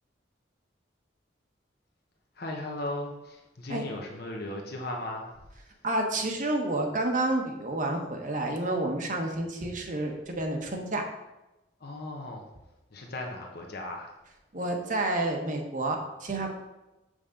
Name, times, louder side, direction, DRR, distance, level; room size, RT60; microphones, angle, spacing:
voice 1, 2.4-5.3 11.8-12.5 12.9-14.1, left 1 dB, 60° left, 1 dB, 1.0 m, -37 dB
voice 2, 5.8-11.0 14.5-16.5, right 2 dB, 45° right, 2 dB, 1.1 m, -29 dB
7.0 x 6.3 x 3.8 m, 1.0 s
head